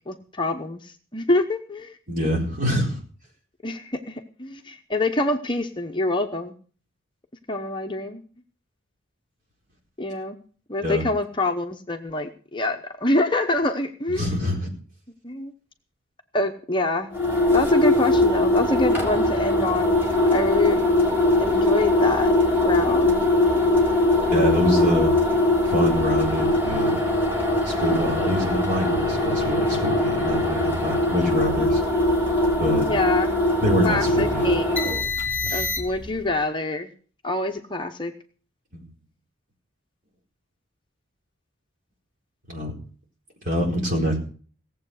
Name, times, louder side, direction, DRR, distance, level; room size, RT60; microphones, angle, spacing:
voice 1, 0.1-2.0 3.6-6.5 7.5-8.2 10.0-10.4 10.7-14.3 15.2-15.5 16.3-17.1 17.5-20.0 20.3-20.8 21.4-22.3 22.6-23.3 32.9-33.3 33.8-35.0 35.5-36.9 37.2-38.1, left 2 dB, 25° left, 4 dB, 0.9 m, -26 dB
voice 2, 2.1-3.0 10.8-11.0 14.1-14.7 24.3-25.1 25.6-27.0 27.6-31.8 32.6-32.9 33.6-34.5 35.4-35.7 38.7-38.9 42.5-42.7 43.4-44.2, equal, 40° right, -1 dB, 4.5 m, -25 dB
sound 1, 17.1-36.1, left 1 dB, 10° right, 3.0 m, -21 dB
17.5 x 7.7 x 6.5 m, 0.43 s
head